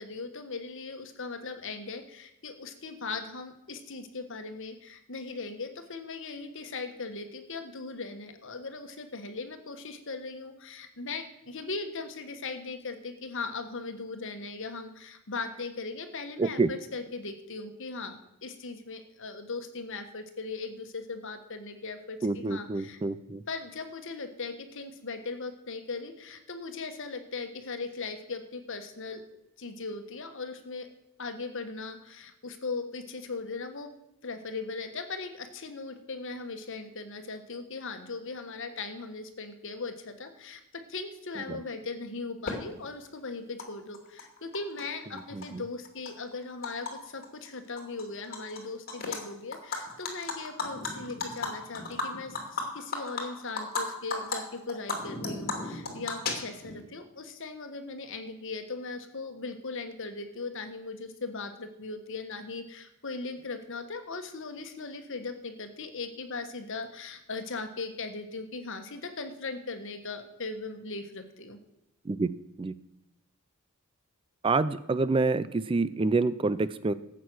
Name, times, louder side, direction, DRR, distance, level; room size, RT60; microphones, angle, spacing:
voice 1, 0.0-23.0 23.5-29.3 29.6-30.9 31.2-33.9 34.2-52.4 52.7-71.6, left 3 dB, 60° left, 7 dB, 1.4 m, -39 dB
voice 2, 16.4-16.7 22.2-23.4 45.3-45.6 72.1-72.3 72.6-72.7 74.4-76.9, right 3 dB, 25° right, 15 dB, 0.3 m, -27 dB
Animal, 42.5-42.6 43.6-43.7 43.9-44.8 45.2-46.9 47.2-47.5 47.8-48.6 48.9-49.2 49.5-53.8 54.1-54.4 54.7-56.8, left 3 dB, 45° left, 2.6 m, -34 dB
14.0 x 8.3 x 6.3 m, 0.86 s
head